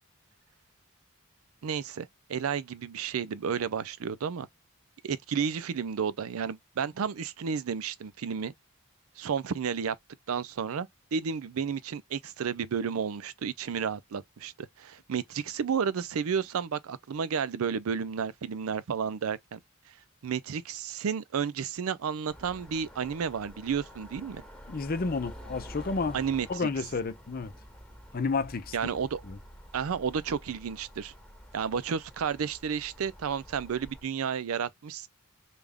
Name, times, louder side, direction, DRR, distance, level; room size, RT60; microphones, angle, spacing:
voice 1, 1.6-4.5 5.0-8.5 9.2-10.0 10.3-19.6 20.2-24.4 26.1-26.7 28.7-29.2 29.7-31.1 31.5-35.1, right 6 dB, 85° right, 0.4 m, -32 dB
sound 1, 22.3-34.0, equal, 5° left, 1.1 m, -49 dB
voice 2, 24.7-26.2 26.5-27.5 28.1-28.7 29.3-29.4, left 4 dB, 45° left, 0.5 m, -31 dB
3.4 x 2.3 x 3.5 m
head